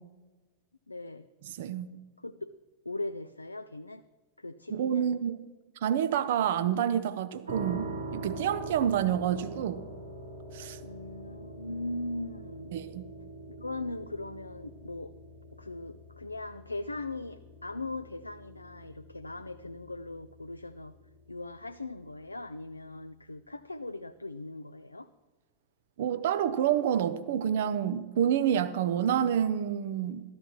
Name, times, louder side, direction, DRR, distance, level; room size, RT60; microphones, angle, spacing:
voice 1, 0.9-1.3 2.2-2.5 2.9-4.0 4.4-5.1 10.8-12.7 13.6-15.1 15.6-20.9 21.3-25.1, left 2 dB, 85° left, 11 dB, 0.3 m, -39 dB
voice 2, 1.5-1.9 4.7-5.4 5.8-9.8 10.5-10.8 12.7-13.0 26.0-30.2, right 9 dB, 55° right, 12 dB, 0.7 m, -28 dB
sound 1, 7.5-22.3, right 2 dB, 75° right, 1.8 m, -44 dB
13.5 x 13.0 x 3.1 m, 1.2 s
figure-of-eight pair, 90°, 0 cm